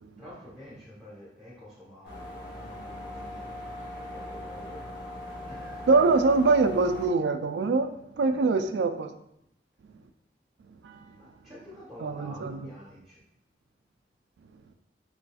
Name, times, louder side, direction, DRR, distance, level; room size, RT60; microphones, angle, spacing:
voice 1, 0.2-2.2 2.5-3.5 3.9-6.2 8.2-8.5 11.2-13.2, equal, ahead, -7 dB, 1.1 m, -48 dB
sound 1, 2.0-7.1, left 1 dB, 65° left, 1.1 m, -40 dB
voice 2, 5.9-7.9 8.2-9.2 10.8-11.0 12.0-12.7, right 3 dB, 85° right, 8 dB, 0.3 m, -24 dB
4.0 x 3.2 x 2.3 m, 0.77 s
head